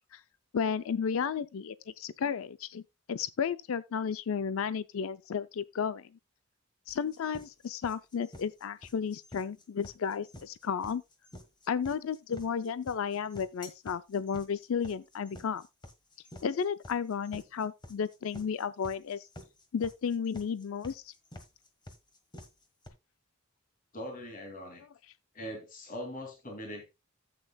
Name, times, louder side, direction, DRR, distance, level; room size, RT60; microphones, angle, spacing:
voice 1, 0.5-2.8 3.1-6.1 6.9-11.0 11.7-15.6 16.4-19.3 19.7-21.1, left 6 dB, 65° left, 0.4 m, -33 dB
sound 1, 6.9-22.9, left 1 dB, 20° left, 1.3 m, -50 dB
voice 2, 23.9-24.8 25.3-27.0, equal, 40° left, 2.5 m, -41 dB
13.0 x 8.4 x 2.2 m
head